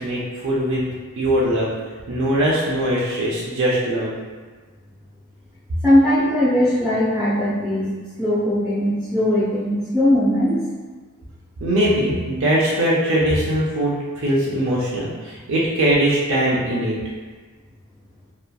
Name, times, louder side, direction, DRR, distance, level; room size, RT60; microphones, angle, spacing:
voice 1, 0.0-1.7 2.1-4.1 11.6-17.0, right 1 dB, 65° right, -5 dB, 0.4 m, -21 dB
voice 2, 5.8-7.9 8.2-10.7, left 1 dB, 5° right, -11 dB, 0.5 m, -19 dB
2.7 x 2.3 x 2.2 m, 1.4 s
head